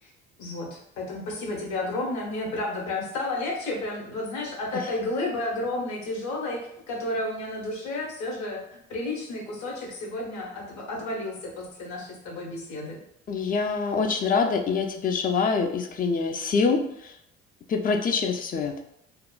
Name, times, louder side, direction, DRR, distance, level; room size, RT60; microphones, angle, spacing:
voice 1, 0.4-13.0, left 2 dB, 60° left, -1 dB, 0.9 m, -32 dB
voice 2, 13.3-17.1 17.7-18.8, left 5 dB, 25° left, 5 dB, 0.3 m, -25 dB
2.8 x 2.1 x 2.3 m, 0.75 s
hypercardioid pair, 55°, 33 cm